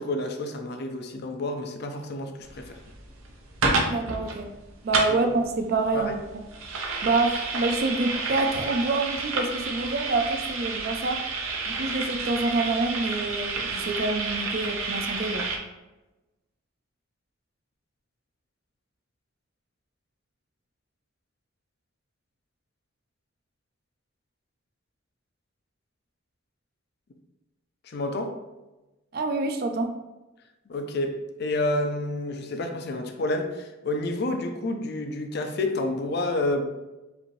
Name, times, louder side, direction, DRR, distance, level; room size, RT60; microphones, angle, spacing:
voice 1, 0.0-2.8 5.1-5.2 5.9-6.2 27.8-28.4 30.7-36.6, left 2 dB, 50° left, 5 dB, 0.5 m, -29 dB
sound 1, 2.4-15.6, right 3 dB, 90° right, 0.7 m, -30 dB
voice 2, 3.7-4.5 4.8-5.3 5.6-6.4 7.0-11.3 11.7-15.5 29.1-29.9, right 3 dB, 45° right, 5 dB, 0.4 m, -27 dB
5.0 x 2.7 x 3.1 m, 1.1 s
head